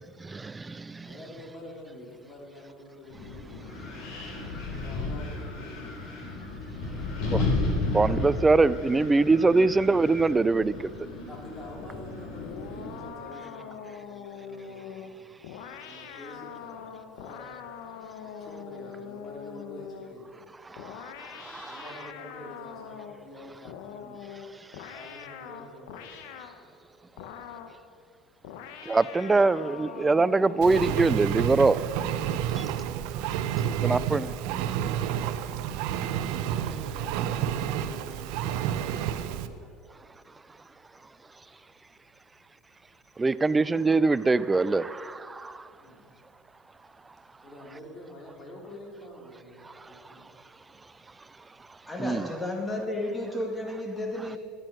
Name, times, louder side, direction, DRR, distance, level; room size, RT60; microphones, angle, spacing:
voice 1, 0.3-1.1 7.3-7.4 7.9-10.9 20.8-20.9 21.3-21.8 28.9-31.8 32.6-32.7 33.8-34.2 43.2-45.5 52.0-52.3, right 3 dB, 15° right, 17 dB, 0.4 m, -23 dB
voice 2, 1.0-3.8 4.7-6.1 6.8-7.3 11.3-15.2 15.8-17.6 18.2-20.5 21.7-24.2 24.9-26.4 33.6-35.6 36.6-39.7 45.8-46.2 47.4-50.4, left 1 dB, 35° left, -1 dB, 3.6 m, -47 dB
Wind, 3.1-13.1, left 2 dB, 60° left, 3.8 m, -33 dB
sound 1, 12.4-20.2 20.8-23.3 23.6-26.6 27.2-27.8 28.4-31.3, left 8 dB, 75° left, 1.0 m, -43 dB
Engine, 30.6-39.5, right 10 dB, 70° right, 0.7 m, -30 dB
voice 3, 51.9-54.4, left 1 dB, 10° left, 3 dB, 2.1 m, -32 dB
12.5 x 9.2 x 6.3 m, 2.1 s
supercardioid pair, 110°, 0 cm